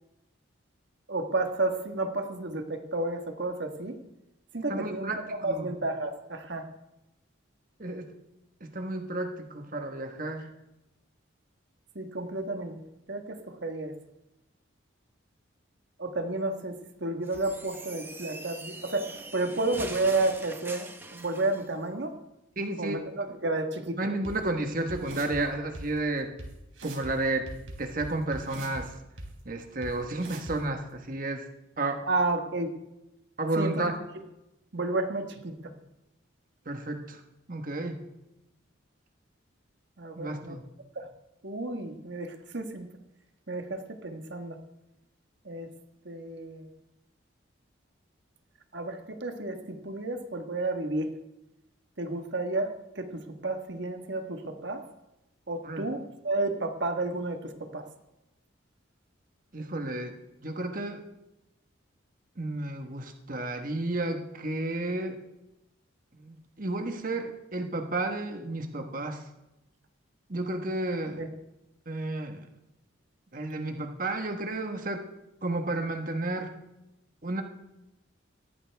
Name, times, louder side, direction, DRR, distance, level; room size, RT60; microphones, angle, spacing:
voice 1, 1.1-4.0 4.5-5.1 5.4-6.7 11.9-12.8 13.1-13.9 16.0-16.7 17.0-19.1 19.3-22.1 22.8-24.0 32.1-32.7 33.6-33.9 34.7-35.5 40.0-40.6 40.9-41.1 41.4-42.9 43.5-44.6 45.4-45.7 46.0-46.7 48.7-49.6 49.8-51.1 52.0-53.1 53.4-54.8 55.5-57.4 57.7-57.8 71.2-71.3, right 2 dB, 60° right, 6 dB, 1.5 m, -31 dB
voice 2, 4.7-5.8 7.8-8.1 8.6-10.5 22.6-23.3 24.0-26.3 26.8-27.5 27.8-29.0 29.4-31.5 31.8-32.1 33.4-33.9 36.6-37.2 37.5-38.0 40.2-40.6 55.6-55.9 59.5-60.2 60.4-61.0 62.4-65.2 66.2-69.2 70.3-71.2 71.9-72.5 73.3-75.1 75.4-76.5 77.2-77.4, right 2 dB, 45° right, 5 dB, 1.3 m, -32 dB
sound 1, 17.2-21.7, right 2 dB, 10° right, 0.9 m, -43 dB
sound 2, 24.2-24.3 24.9-25.4 25.7-25.8 26.4-26.5 26.8-27.1 27.5-28.8 29.2-29.3 29.8-29.9 30.2-30.6, right 1 dB, 80° right, 3.3 m, -40 dB
18.0 x 14.0 x 3.5 m, 0.93 s
head